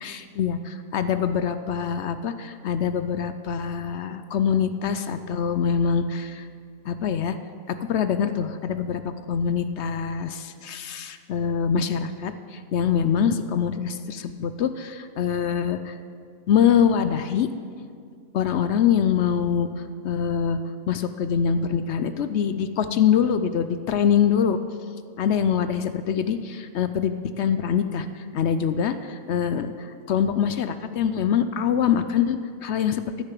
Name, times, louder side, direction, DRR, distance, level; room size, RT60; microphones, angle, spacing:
voice 1, 0.0-6.5 6.9-7.4 7.7-9.0 9.3-15.9 16.5-17.5 18.3-19.7 20.0-20.6 20.9-24.6 25.2-33.1, left 8 dB, 65° left, 11 dB, 0.7 m, -24 dB
14.0 x 6.7 x 7.5 m, 2.2 s
omnidirectional pair, 1.5 m